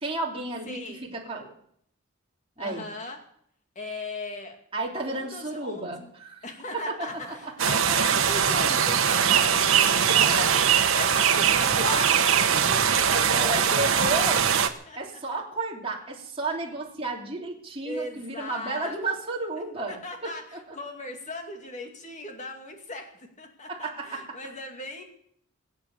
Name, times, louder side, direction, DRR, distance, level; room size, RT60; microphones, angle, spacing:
voice 1, 0.0-1.5 2.6-2.9 4.7-6.4 6.9-7.5 10.0-10.5 10.8-11.9 13.1-14.4 15.0-20.3 23.7-24.3, right 2 dB, 30° right, -2 dB, 3.2 m, -32 dB
voice 2, 0.6-1.1 2.6-3.2 3.8-4.6 5.1-6.1 6.4-10.5 10.9-13.3 13.7-14.2 14.6-15.4 17.8-19.0 19.9-25.0, left 2 dB, 35° left, 3 dB, 2.4 m, -38 dB
sound 1, 7.0-13.1, equal, 20° left, 7.1 m, -45 dB
sound 2, 7.6-14.7, right 8 dB, 85° right, 1.2 m, -21 dB
23.5 x 8.6 x 6.9 m, 0.69 s
head